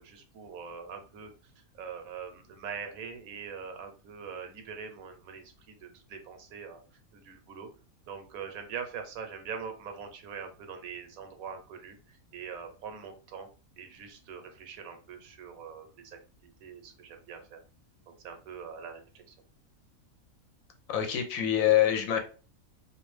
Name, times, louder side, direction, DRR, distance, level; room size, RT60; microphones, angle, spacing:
voice 1, 0.0-1.3 1.7-6.8 7.1-7.7 8.1-13.5 13.8-17.6 18.1-19.3, right 6 dB, 80° right, 6 dB, 1.0 m, -43 dB
voice 2, 20.9-22.2, left 11 dB, 75° left, 4 dB, 1.0 m, -25 dB
2.5 x 2.2 x 3.1 m, 0.36 s
omnidirectional pair, 1.5 m